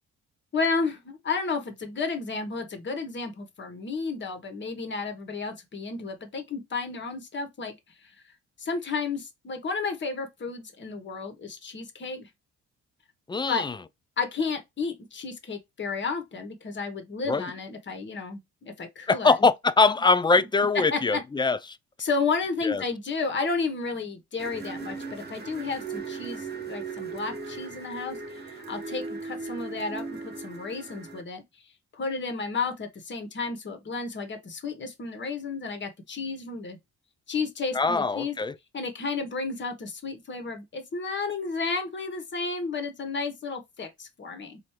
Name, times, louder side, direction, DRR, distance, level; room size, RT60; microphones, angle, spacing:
voice 1, 0.5-7.7 8.6-12.3 13.5-13.6 14.2-19.3 20.4-20.5 20.9-21.2 22.0-31.4 31.9-36.8 37.3-38.4 38.7-44.6, left 4 dB, 40° left, 1.2 m, -32 dB
voice 2, 13.3-13.8 17.3-17.5 19.1-21.8 22.6-22.8 37.7-38.5, left 4 dB, 15° left, 0.3 m, -23 dB
sound 1, 24.4-31.2, right 4 dB, 35° right, 1.2 m, -38 dB
4.4 x 2.7 x 3.1 m
cardioid pair, 90°, 30 cm